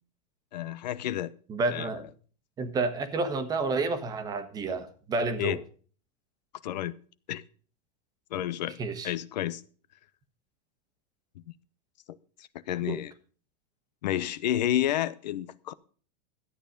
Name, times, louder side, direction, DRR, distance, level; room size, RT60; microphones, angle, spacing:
voice 1, 0.5-1.3 1.7-1.9 5.4-5.6 6.6-6.9 7.3-7.4 8.3-8.8 9.0-9.6 12.7-13.1 14.0-15.7, left 12 dB, 90° left, 0.8 m, -30 dB
voice 2, 1.5-2.1 2.6-5.6 8.8-9.1 12.8-13.0, right 3 dB, 20° right, 1.2 m, -30 dB
13.0 x 9.0 x 5.2 m
supercardioid pair, 155°, 21 cm